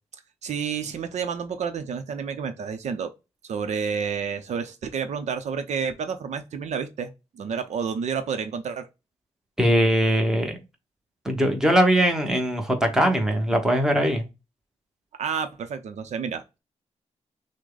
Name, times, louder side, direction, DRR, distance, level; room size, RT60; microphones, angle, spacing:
voice 1, 0.4-3.1 3.5-8.9 15.2-16.6, right 6 dB, 70° right, 0.7 m, -30 dB
voice 2, 9.6-10.6 11.2-14.3, equal, 5° right, 1.1 m, -21 dB
6.2 x 2.2 x 3.9 m
wide cardioid pair, 165°, 12 cm